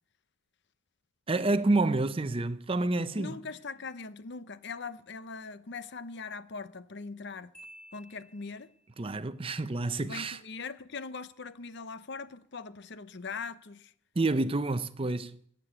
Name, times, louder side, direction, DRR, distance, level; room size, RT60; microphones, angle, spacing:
voice 1, 1.3-3.4 9.0-10.4 14.2-15.4, right 2 dB, 25° right, 0.6 m, -28 dB
voice 2, 3.1-7.5 7.9-8.7 10.0-13.9, left 4 dB, 55° left, 0.7 m, -41 dB
Marimba xylophone, 7.5-9.0, right 1 dB, 5° left, 4.9 m, -53 dB
16.5 x 9.1 x 8.0 m
head